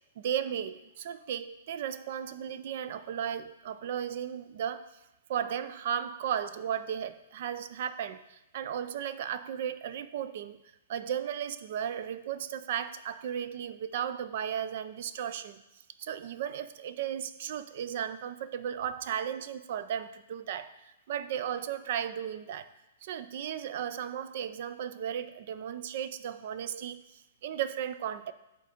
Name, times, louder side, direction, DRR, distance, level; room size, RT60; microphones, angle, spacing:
voice 1, 0.2-4.9 5.3-10.6 10.9-15.6 16.0-22.7 23.0-28.3, right 9 dB, 50° right, 12 dB, 0.4 m, -35 dB
9.1 x 3.7 x 5.1 m, 0.93 s
hypercardioid pair, 165°, 0 cm